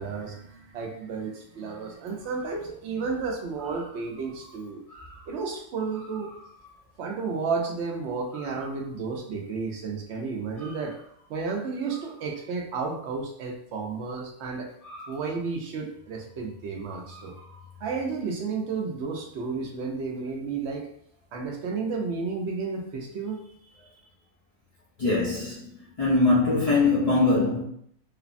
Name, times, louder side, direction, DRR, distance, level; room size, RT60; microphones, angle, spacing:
voice 1, 0.0-4.8 5.3-6.3 7.0-10.9 11.3-14.7 15.1-17.3 17.8-20.9 21.3-23.4, right 4 dB, 75° right, 1 dB, 0.8 m, -32 dB
voice 2, 4.9-5.3 6.3-6.4 8.3-8.5 10.6-10.8 14.8-15.2 17.1-17.7 25.0-27.6, left 3 dB, 40° left, -7 dB, 0.5 m, -25 dB
3.3 x 2.0 x 2.4 m, 0.68 s
omnidirectional pair, 1.2 m